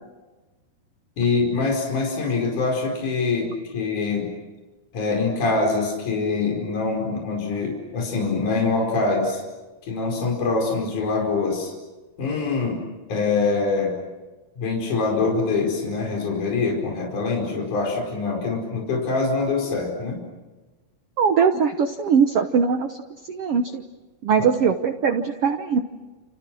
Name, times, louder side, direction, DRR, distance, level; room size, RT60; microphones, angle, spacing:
voice 1, 1.2-4.3 4.9-9.4 9.8-11.7 12.2-14.0 14.6-20.2 24.4-24.5, left 4 dB, 55° left, 0 dB, 6.4 m, -24 dB
voice 2, 21.2-23.0 23.3-23.8 24.2-25.8, right 6 dB, 90° right, 7 dB, 1.3 m, -21 dB
30.0 x 29.5 x 6.3 m, 1.2 s
omnidirectional pair, 4.3 m